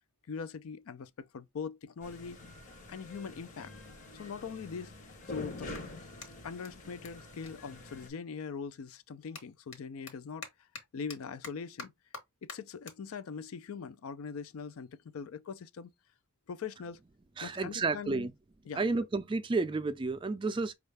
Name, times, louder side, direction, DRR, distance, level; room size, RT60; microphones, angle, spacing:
voice 1, 0.3-2.4 2.9-3.7 4.1-4.9 5.3-5.7 6.4-10.5 10.9-11.9 12.4-15.9 16.5-17.0 17.4-18.3 18.7-18.8, left 5 dB, 80° left, 0.4 m, -41 dB
sound 1, 2.0-8.1, left 2 dB, 35° left, 0.7 m, -46 dB
Clapping, 5.7-8.4 8.7-15.4, left 3 dB, 60° left, 1.1 m, -51 dB
voice 2, 17.4-18.3 18.8-20.7, right 3 dB, 25° right, 0.3 m, -31 dB
5.3 x 2.4 x 3.2 m
head